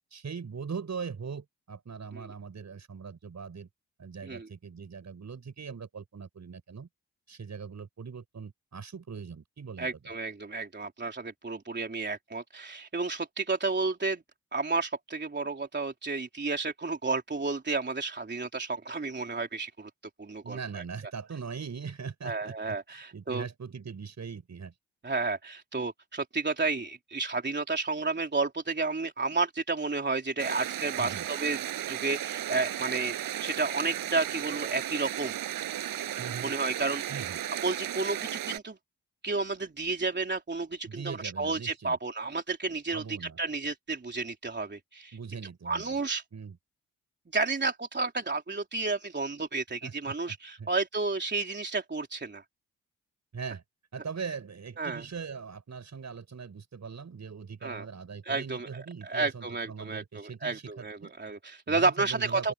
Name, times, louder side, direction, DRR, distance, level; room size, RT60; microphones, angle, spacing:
voice 1, 0.1-3.7 4.0-6.9 7.3-10.0 20.4-24.7 31.0-31.2 36.2-36.5 37.1-37.4 40.8-42.0 42.9-43.4 45.1-46.0 46.3-46.6 49.8-50.7 53.3-53.6 53.9-61.1 61.7-62.5, right 6 dB, 55° right, 7.6 m, -41 dB
voice 2, 9.8-14.2 14.5-19.9 20.2-20.8 22.2-23.5 25.0-31.6 31.9-35.3 36.4-37.2 37.6-38.8 39.2-45.2 45.7-46.2 47.3-52.4 54.8-55.0 57.6-57.9 58.3-58.7 59.0-62.5, right 3 dB, 30° right, 3.5 m, -31 dB
sound 1, 30.4-38.6, right 11 dB, 85° right, 7.6 m, -35 dB
open air
supercardioid pair, 50°, 33 cm